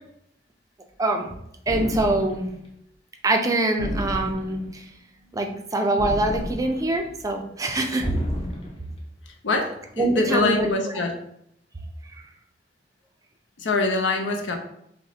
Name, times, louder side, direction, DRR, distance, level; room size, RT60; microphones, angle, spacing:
voice 1, 1.0-1.3 1.7-2.4 3.2-4.8 5.3-8.1 10.0-10.7, right 2 dB, 20° right, 4 dB, 0.4 m, -24 dB
sound 1, 1.7-2.5 3.8-4.8 6.0-7.0 8.0-8.9, left 1 dB, 30° left, 0.6 m, -32 dB
voice 2, 9.4-11.1 13.6-14.6, left 3 dB, 90° left, 3 dB, 0.6 m, -24 dB
5.5 x 2.1 x 2.7 m, 0.75 s
head